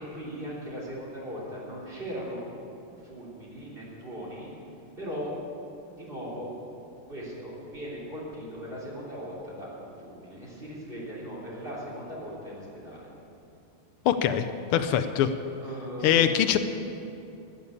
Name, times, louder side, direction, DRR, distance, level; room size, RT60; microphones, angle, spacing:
voice 1, 0.0-2.6 3.0-4.5 5.0-5.3 6.0-6.5 7.1-13.1 15.6-16.3, equal, 25° right, -5 dB, 3.5 m, -38 dB
voice 2, 14.0-14.5 14.7-15.3 16.0-16.6, left 10 dB, 85° left, 10 dB, 1.6 m, -22 dB
12.5 x 9.8 x 8.3 m, 2.7 s
omnidirectional pair, 2.4 m